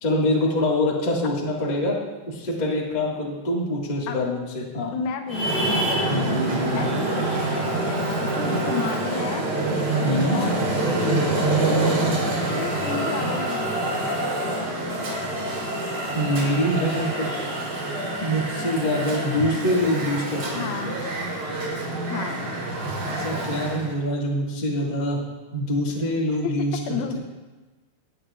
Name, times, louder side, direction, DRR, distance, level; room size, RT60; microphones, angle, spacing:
voice 1, 0.0-2.0 2.2-5.0 6.1-6.8 10.0-10.4 16.1-17.3 18.2-20.7 23.2-25.2 25.5-27.2, left 1 dB, 45° left, -4 dB, 0.5 m, -25 dB
voice 2, 4.9-6.3 6.7-9.5 10.3-14.1 20.5-21.0 22.1-22.5 26.4-27.2, left 7 dB, 80° left, 5 dB, 2.6 m, -32 dB
Traffic noise roadway noise, 5.3-23.9, right 2 dB, 35° right, 4.1 m, -26 dB
18.0 x 8.7 x 2.4 m, 1.2 s
omnidirectional pair, 4.3 m